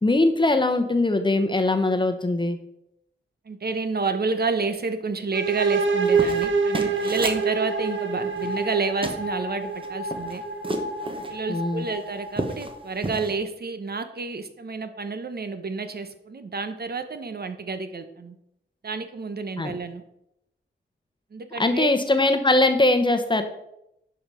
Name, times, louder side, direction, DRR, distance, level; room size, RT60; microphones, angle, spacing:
voice 1, 0.0-2.6 11.5-11.8 19.6-19.7 21.6-23.4, left 2 dB, 25° left, 7 dB, 0.9 m, -21 dB
voice 2, 3.4-10.4 11.1-18.4 18.8-20.0 21.3-21.9, right 4 dB, 55° right, 9 dB, 0.8 m, -29 dB
sound 1, 5.3-13.0, right 4 dB, 75° right, 1.1 m, -27 dB
sound 2, 5.8-7.4 8.3-8.8 9.0-9.2 9.7-11.3 11.8-11.9 12.3-12.7 13.0-13.3, right 2 dB, 25° right, 1.1 m, -32 dB
11.0 x 5.0 x 5.6 m, 0.81 s
wide cardioid pair, 130°, 20 cm